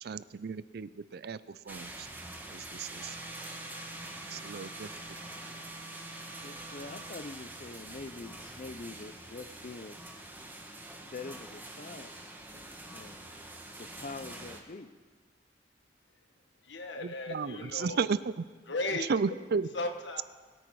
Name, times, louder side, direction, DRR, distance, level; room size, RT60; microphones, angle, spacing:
voice 1, 0.0-2.1 2.5-3.2 4.3-4.9 17.0-18.4 19.1-19.7, right 5 dB, 60° right, 17 dB, 0.4 m, -34 dB
sound 1, 1.7-14.6, right 1 dB, 10° right, 1.2 m, -45 dB
Wind instrument woodwind instrument, 2.8-7.2, right 2 dB, 35° right, 3.2 m, -50 dB
voice 2, 6.4-10.0 11.1-13.3 13.8-14.9, left 3 dB, 45° left, 11 dB, 0.5 m, -45 dB
voice 3, 16.6-18.0 18.7-19.1 19.7-20.2, left 2 dB, 75° left, 6 dB, 1.3 m, -35 dB
21.5 x 9.0 x 4.7 m, 1.4 s
head